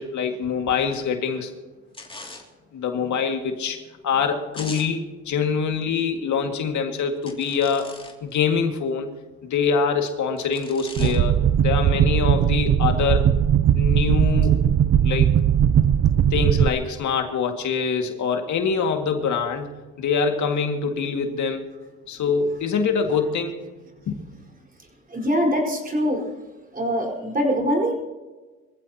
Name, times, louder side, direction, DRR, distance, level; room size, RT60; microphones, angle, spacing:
voice 1, 0.0-1.5 2.7-8.0 8.2-9.1 9.4-13.2 13.7-14.6 15.0-15.3 16.3-21.6 22.1-23.6 24.1-24.2, left 6 dB, 70° left, 4 dB, 2.1 m, -24 dB
sound 1, 1.9-2.5 4.5-4.9 7.2-8.3 10.4-11.3, left 2 dB, 15° left, 2.7 m, -40 dB
sound 2, 11.0-16.7, right 9 dB, 55° right, 0.6 m, -19 dB
voice 2, 25.1-26.3 26.7-27.9, equal, 30° right, 1 dB, 4.8 m, -23 dB
24.5 x 15.0 x 2.9 m, 1.3 s
cardioid pair, 90°, 30 cm